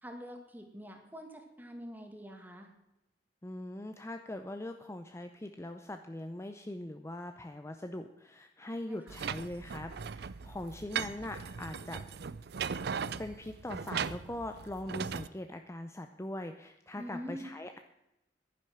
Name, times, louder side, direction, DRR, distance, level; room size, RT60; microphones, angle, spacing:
voice 1, 0.0-2.7 8.9-9.2 17.0-17.5, equal, 10° right, 3 dB, 2.1 m, -45 dB
voice 2, 3.4-12.0 13.2-17.8, left 1 dB, 15° left, 7 dB, 0.6 m, -41 dB
sound 1, 9.1-15.3, right 6 dB, 65° right, 0.5 m, -38 dB
11.0 x 10.5 x 6.3 m, 0.91 s
head